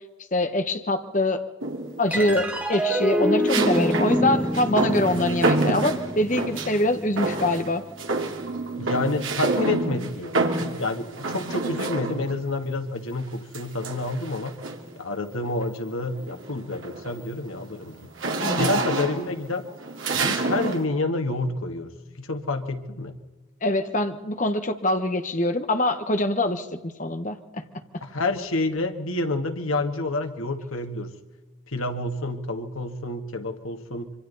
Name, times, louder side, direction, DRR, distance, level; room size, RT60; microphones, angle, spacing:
voice 1, 0.3-1.4 2.0-7.8 18.4-18.8 23.6-27.6, left 1 dB, 35° left, 8 dB, 1.2 m, -24 dB
sound 1, 1.6-2.1 3.5-6.8 7.2-7.7 8.0-12.4 13.5-14.9 15.5-15.7 16.1-20.8, right 3 dB, 75° right, 2.5 m, -28 dB
sound 2, 2.1-8.8, equal, 5° right, 1.6 m, -27 dB
voice 2, 8.8-10.3 10.6-14.6 15.0-18.1 18.6-19.7 20.1-21.9 22.2-23.2 28.0-31.1 31.7-34.1, left 2 dB, 85° left, 6 dB, 1.7 m, -29 dB
26.0 x 24.5 x 4.1 m, 1.3 s
head